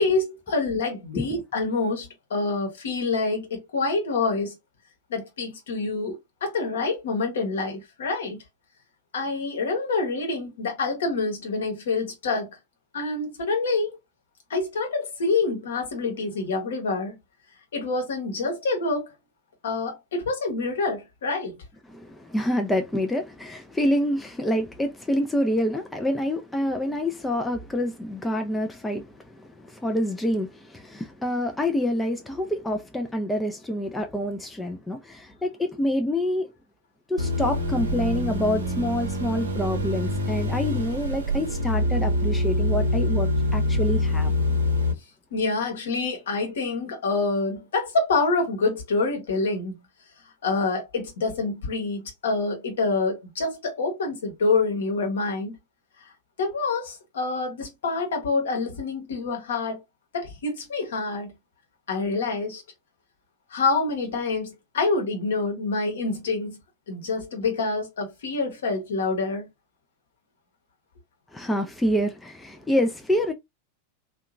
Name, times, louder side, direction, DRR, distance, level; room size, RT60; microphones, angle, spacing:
voice 1, 0.0-4.5 5.1-8.4 9.1-12.5 12.9-14.0 14.5-17.2 17.7-19.1 19.6-21.5 45.3-49.8 50.4-55.5 56.4-59.8 60.1-61.3 61.9-62.6 63.5-66.6 66.9-69.5, left 3 dB, 60° left, 1.0 m, -26 dB
voice 2, 21.9-36.5 37.1-44.3 71.3-73.3, left 1 dB, 10° left, 0.4 m, -27 dB
sound 1, 37.2-44.9, left 1 dB, 70° right, 0.7 m, -25 dB
2.7 x 2.2 x 2.4 m
figure-of-eight pair, 90°, 0 cm